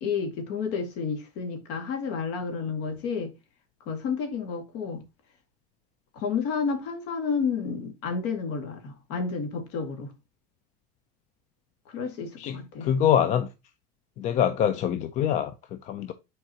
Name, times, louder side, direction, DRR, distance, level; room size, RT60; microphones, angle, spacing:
voice 1, 0.0-3.3 3.9-5.0 6.1-10.1 11.9-12.9, left 5 dB, 60° left, 2.1 m, -31 dB
voice 2, 12.4-13.5 14.2-16.1, left 9 dB, 35° left, 0.5 m, -25 dB
9.1 x 4.6 x 2.9 m
cardioid pair, 150°, 20 cm